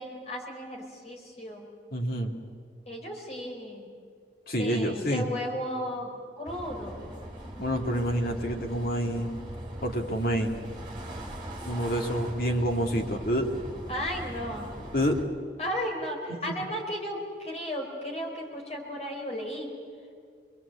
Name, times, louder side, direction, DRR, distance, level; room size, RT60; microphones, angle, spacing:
voice 1, 0.0-1.7 2.9-3.9 4.6-7.0 13.9-14.7 15.6-19.7, equal, 35° left, 0 dB, 4.4 m, -35 dB
voice 2, 1.9-2.3 4.5-5.3 7.6-9.3 9.8-10.5 11.6-13.5 14.9-15.2, equal, 55° left, 2 dB, 2.5 m, -27 dB
sound 1, 6.5-15.2, right 1 dB, 25° right, 3.9 m, -40 dB
26.5 x 22.0 x 8.3 m, 2.2 s
head